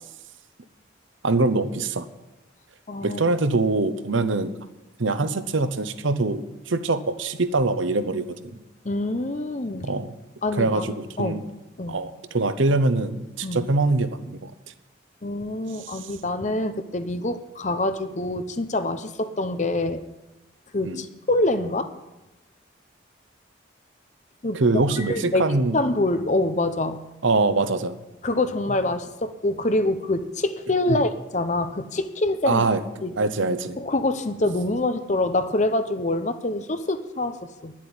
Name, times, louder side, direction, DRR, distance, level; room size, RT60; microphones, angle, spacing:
voice 1, 1.2-2.1 3.0-4.5 5.0-8.6 9.8-10.1 10.5-11.4 11.9-14.5 15.8-16.1 20.8-21.0 24.5-25.8 27.2-28.0 30.9-31.0 32.5-32.8 33.2-33.8, right 3 dB, 75° right, 11 dB, 0.9 m, -23 dB
voice 2, 2.9-3.2 8.8-9.9 10.4-11.4 11.8-12.0 13.4-13.6 15.2-20.0 20.7-21.9 24.4-24.6 25.0-25.4 25.7-27.0 28.2-32.6 33.0-33.2 33.8-37.7, left 2 dB, 35° left, 10 dB, 0.8 m, -25 dB
10.5 x 7.5 x 9.6 m, 1.0 s
head